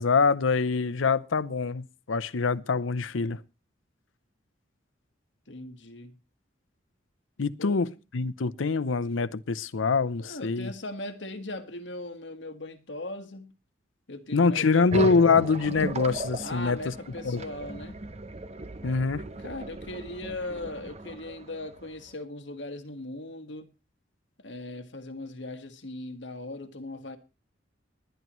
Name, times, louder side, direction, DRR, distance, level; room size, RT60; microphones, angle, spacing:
voice 1, 0.0-3.4 7.4-10.7 14.3-16.9 17.2-17.4 18.8-19.2, left 4 dB, 85° left, 0.7 m, -25 dB
voice 2, 5.5-6.2 7.6-8.0 10.2-13.5 14.1-14.9 16.4-18.0 19.4-23.7 24.4-27.2, left 2 dB, 65° left, 1.6 m, -39 dB
sound 1, 14.9-22.1, right 2 dB, 35° right, 0.7 m, -37 dB
20.0 x 10.5 x 3.1 m
head